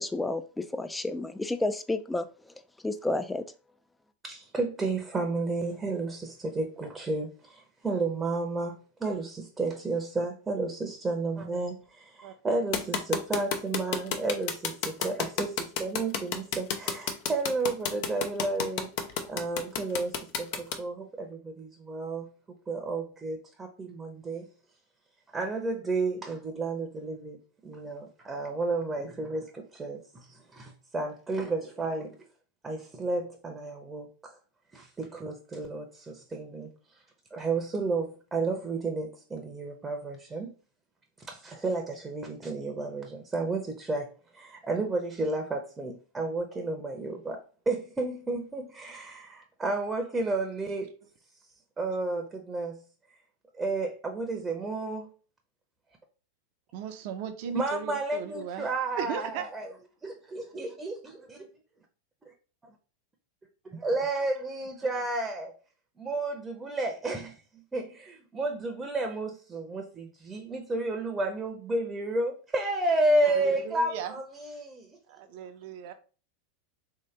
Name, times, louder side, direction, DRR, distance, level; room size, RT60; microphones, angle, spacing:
voice 1, 0.0-2.3 2.8-3.4, left 2 dB, 10° left, 0.4 m, -30 dB
voice 2, 4.2-18.9 19.2-22.3 22.7-24.5 25.3-32.2 32.6-34.4 34.7-36.7 37.3-40.5 41.2-44.1 44.3-47.4 47.7-50.9 51.8-52.8 53.6-55.1 57.5-59.7 60.0-61.4 62.3-62.4 63.7-65.5 66.0-74.9, right 2 dB, 15° right, 0.7 m, -32 dB
sound 1, 12.7-20.8, left 7 dB, 60° left, 0.6 m, -30 dB
voice 3, 56.7-58.7 59.0-59.5 73.3-74.2 75.1-75.9, right 8 dB, 60° right, 0.6 m, -37 dB
3.2 x 2.8 x 3.2 m
hypercardioid pair, 105°, 0 cm